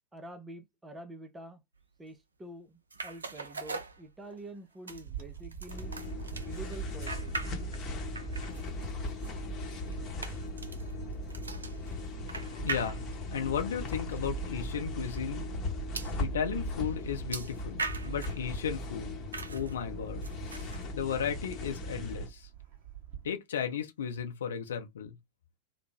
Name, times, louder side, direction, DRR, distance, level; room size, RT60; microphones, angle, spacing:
voice 1, 0.1-1.6 2.0-5.9 6.4-7.3, right 1 dB, 10° right, 0.5 m, -47 dB
sound 1, 2.9-4.5 4.9-7.9 8.1-13.4 14.1-14.2 14.6-14.7 15.9-16.2 17.3-18.4 19.3-19.7 20.2-20.8, right 4 dB, 75° right, 0.4 m, -41 dB
Bird / Wind, 5.0-23.3, right 11 dB, 45° right, 0.8 m, -45 dB
sound 2, 5.7-22.3, left 2 dB, 30° left, 0.9 m, -38 dB
voice 2, 12.6-15.5 16.2-19.1 19.5-20.2 20.9-22.5 23.2-25.2, left 8 dB, 65° left, 0.7 m, -35 dB
2.8 x 2.1 x 3.2 m
figure-of-eight pair, 90°, 0 cm